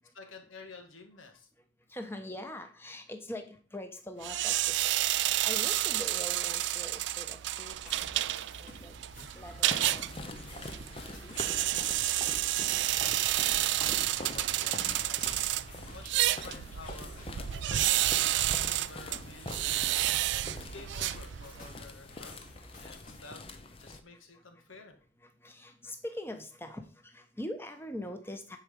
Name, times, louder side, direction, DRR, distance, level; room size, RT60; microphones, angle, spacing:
voice 1, 0.1-1.5 13.0-15.3 15.9-17.9 18.3-19.8 20.5-23.4 23.8-25.0, left 3 dB, 80° left, 5 dB, 2.0 m, -51 dB
voice 2, 1.9-10.4 11.2-11.5 16.3-16.4 17.5-17.6 20.2-20.3 25.2-28.6, left 1 dB, 10° left, 6 dB, 1.1 m, -43 dB
sound 1, 4.2-21.7, right 14 dB, 60° right, 0.3 m, -30 dB
sound 2, 7.7-23.2, left 1 dB, 45° left, 2.4 m, -52 dB
sound 3, 9.4-24.0, left 2 dB, 30° left, 0.7 m, -44 dB
9.8 x 4.9 x 5.4 m, 0.40 s
head